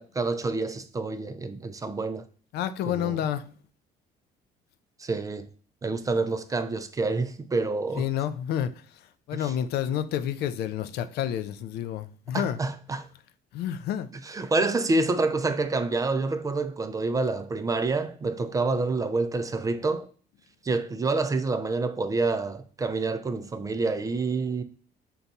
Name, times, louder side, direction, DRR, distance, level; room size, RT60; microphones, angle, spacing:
voice 1, 0.0-2.3 2.8-3.2 5.0-5.5 5.8-8.1 9.3-9.5 12.3-13.1 14.3-20.1 20.6-24.6, right 3 dB, 20° right, 0.3 m, -27 dB
voice 2, 2.5-3.5 8.0-12.6 13.5-14.1, left 10 dB, 75° left, 0.4 m, -29 dB
3.9 x 2.3 x 4.0 m
cardioid pair, 110°, 17 cm